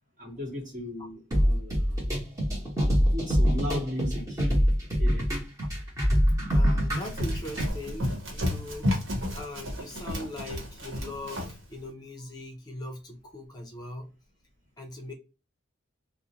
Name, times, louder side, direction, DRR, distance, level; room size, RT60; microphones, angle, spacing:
voice 1, 0.2-2.0 3.1-4.4 5.0-5.3, left 1 dB, 40° right, 1.1 m, -36 dB
sound 1, 1.3-7.7, equal, 15° right, 1.0 m, -24 dB
voice 2, 6.5-8.9 9.3-14.1 14.8-15.1, left 1 dB, 20° left, 0.5 m, -40 dB
Run, 6.9-11.6, left 1 dB, 70° right, 1.0 m, -32 dB
2.5 x 2.0 x 2.8 m
head